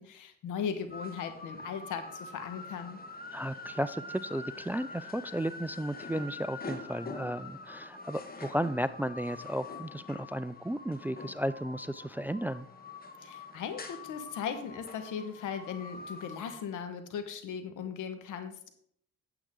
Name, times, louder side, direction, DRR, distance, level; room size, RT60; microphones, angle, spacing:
voice 1, 0.0-3.0 13.2-18.7, left 7 dB, 80° left, 8 dB, 1.4 m, -38 dB
sound 1, 0.9-16.6, left 3 dB, 30° left, 1.4 m, -45 dB
voice 2, 3.3-12.7, equal, 5° right, 14 dB, 0.3 m, -34 dB
9.0 x 8.0 x 3.7 m, 0.66 s
cardioid pair, 90°, 30 cm